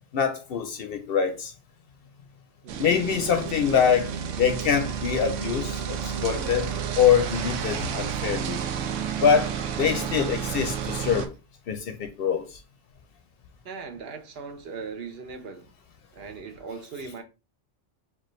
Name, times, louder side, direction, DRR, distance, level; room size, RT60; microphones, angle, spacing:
voice 1, 0.1-1.5 2.8-8.6 9.2-11.3 11.7-12.6, left 7 dB, 60° left, 0.7 m, -24 dB
sound 1, 2.7-11.3, right 7 dB, 90° right, 0.9 m, -31 dB
voice 2, 13.6-15.7 16.1-17.2, right 5 dB, 60° right, 0.8 m, -39 dB
4.5 x 2.3 x 3.0 m
omnidirectional pair, 1.2 m